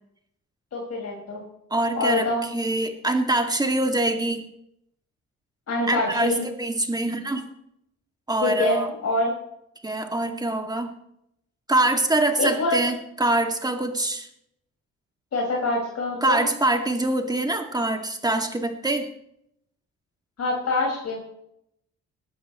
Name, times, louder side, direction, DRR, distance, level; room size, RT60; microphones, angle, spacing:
voice 1, 0.7-1.4 1.9-2.5 5.7-6.5 8.4-9.3 12.4-12.8 15.3-16.5 20.4-21.2, left 2 dB, 55° left, -2 dB, 5.4 m, -25 dB
voice 2, 1.7-2.3 2.5-4.4 5.9-7.5 8.3-8.9 9.8-10.9 11.7-14.3 16.2-19.1, right 2 dB, 15° right, 5 dB, 2.1 m, -24 dB
20.0 x 12.5 x 3.1 m, 0.74 s
cardioid pair, 90°, 30 cm